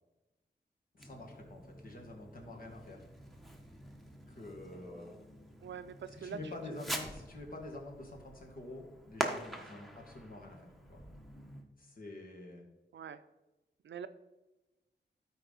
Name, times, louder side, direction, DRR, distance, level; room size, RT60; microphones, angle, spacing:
voice 1, 0.9-3.0 4.3-5.1 6.2-10.6 10.9-11.0 11.8-12.6, left 2 dB, 50° left, 0 dB, 1.9 m, -47 dB
Fireworks, 1.0-11.7, right 1 dB, ahead, 1.1 m, -45 dB
voice 2, 5.6-6.4 6.7-6.8 12.9-13.2 13.8-14.1, right 7 dB, 75° right, 12 dB, 0.5 m, -44 dB
12.5 x 4.7 x 4.1 m, 1.1 s
wide cardioid pair, 85°, 19 cm